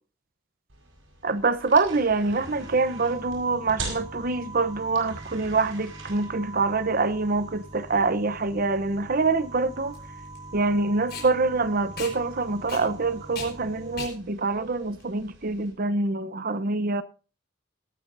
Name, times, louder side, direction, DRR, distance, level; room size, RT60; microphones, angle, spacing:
sound 1, 0.7-15.7, right 3 dB, 80° right, 5.2 m, -45 dB
voice 1, 1.2-10.0 10.5-17.0, right 3 dB, 45° right, 0.8 m, -25 dB
sound 2, 2.4-14.0, right 2 dB, 20° right, 3.2 m, -44 dB
Packing tape duct tape, 8.3-15.8, left 5 dB, 50° left, 5.1 m, -42 dB
18.5 x 12.0 x 2.7 m
head